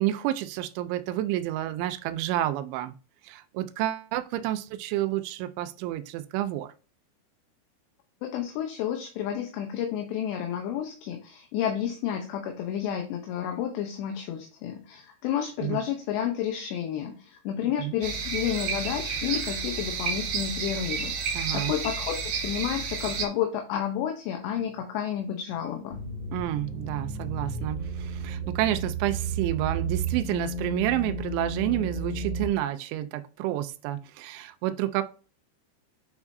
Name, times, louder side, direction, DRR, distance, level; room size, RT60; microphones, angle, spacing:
voice 1, 0.0-2.9 3.2-6.7 15.6-15.8 17.8-17.9 21.3-21.8 26.3-35.0, right 13 dB, 85° right, 2.7 m, -29 dB
voice 2, 8.2-26.0, left 9 dB, 75° left, 2.7 m, -31 dB
sound 1, 18.0-23.3, right 5 dB, 55° right, 3.7 m, -31 dB
sound 2, 25.9-32.5, right 3 dB, 25° left, 1.2 m, -33 dB
9.5 x 4.8 x 2.7 m
omnidirectional pair, 5.6 m